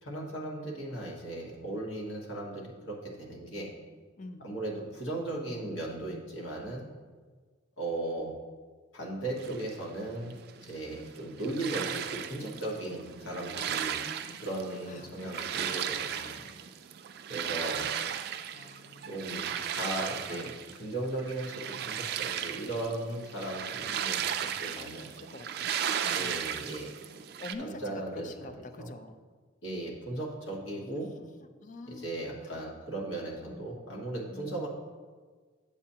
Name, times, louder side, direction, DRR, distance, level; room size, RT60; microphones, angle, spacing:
voice 1, 0.0-3.7 4.4-6.9 7.8-8.3 8.9-14.0 14.4-16.5 17.3-17.9 19.1-20.5 20.8-24.2 24.6-25.1 26.1-26.9 27.6-28.3 28.8-28.9 29.6-31.1 31.9-34.7, right 2 dB, 70° left, -3 dB, 1.5 m, -37 dB
voice 2, 4.2-4.5 13.6-14.4 14.9-15.8 17.4-17.6 18.0-18.2 18.5-19.8 20.3-20.6 23.9-24.5 24.7-25.7 26.0-26.4 27.4-29.2 30.9-32.1 32.4-32.6 33.4-33.6 34.3-34.6, left 2 dB, 40° left, 8 dB, 0.4 m, -47 dB
sound 1, 9.4-27.5, right 9 dB, 50° right, 0.3 m, -36 dB
8.5 x 7.0 x 2.8 m, 1.5 s
head